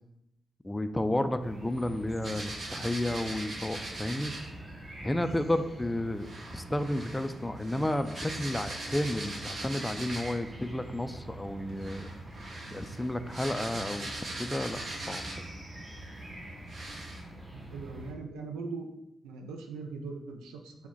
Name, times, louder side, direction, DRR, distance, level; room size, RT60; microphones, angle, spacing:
voice 1, 0.6-4.3 5.0-12.1 12.7-14.1 14.4-14.8 15.1-15.2, left 1 dB, 15° left, 9 dB, 0.3 m, -32 dB
sound 1, 1.4-18.1, right 1 dB, 45° right, 1.0 m, -45 dB
sound 2, 2.2-4.5 6.2-10.5 11.7-15.6 16.2-16.3 16.7-17.2, right 2 dB, 60° right, 0.8 m, -41 dB
voice 2, 17.5-18.9 19.2-20.8, right 4 dB, 90° right, 3 dB, 0.4 m, -40 dB
3.4 x 2.1 x 3.8 m, 0.85 s
supercardioid pair, 40°, 0 cm